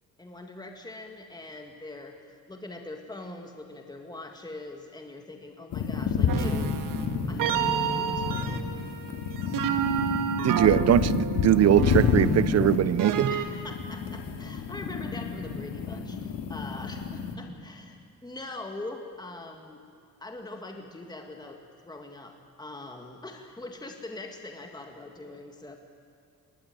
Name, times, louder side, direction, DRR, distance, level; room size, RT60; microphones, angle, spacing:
voice 1, 0.2-2.2 2.5-6.9 7.3-8.7 13.3-19.8 20.2-25.8, left 2 dB, 10° left, 1.9 m, -42 dB
sound 1, 5.7-17.3, left 6 dB, 90° left, 2.3 m, -29 dB
sound 2, 6.3-13.5, right 8 dB, 75° right, 1.6 m, -31 dB
voice 2, 10.4-13.3, right 11 dB, 50° right, 0.6 m, -21 dB
22.0 x 19.0 x 9.1 m
cardioid pair, 120°, 33 cm